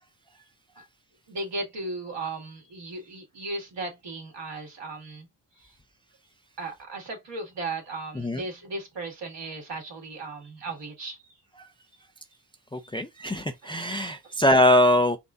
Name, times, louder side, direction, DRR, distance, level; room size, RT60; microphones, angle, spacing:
voice 1, 1.3-5.3 5.6-5.8 6.6-11.4 12.8-12.9 13.2-13.3 13.6-13.8 14.1-14.4, right 2 dB, 60° right, 2.1 m, -36 dB
voice 2, 8.1-8.5 12.7-15.2, left 1 dB, 10° left, 0.5 m, -22 dB
4.2 x 2.5 x 3.5 m
supercardioid pair, 60°, 47 cm